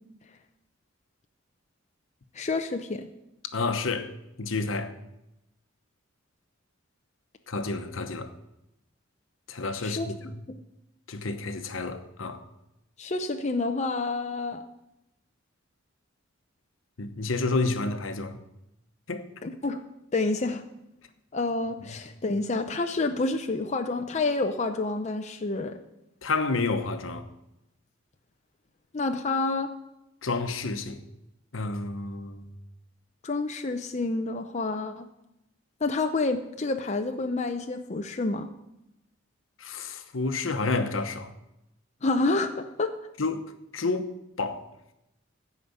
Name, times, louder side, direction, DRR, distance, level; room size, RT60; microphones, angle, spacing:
voice 1, 2.3-3.1 9.8-10.1 10.5-10.6 13.0-14.6 19.4-19.8 20.1-20.6 21.3-25.8 28.9-29.7 33.2-35.1 35.8-38.5 42.0-42.9, left 3 dB, 35° left, 0.6 m, -28 dB
voice 2, 3.5-4.1 4.4-4.9 7.5-8.3 9.5-10.2 11.1-12.4 17.0-18.4 19.1-19.2 26.2-27.3 30.2-31.0 31.5-32.5 39.6-41.3 43.2-43.4 43.7-44.1 44.4-44.6, left 3 dB, 75° left, 1.1 m, -29 dB
15.5 x 5.1 x 8.1 m
head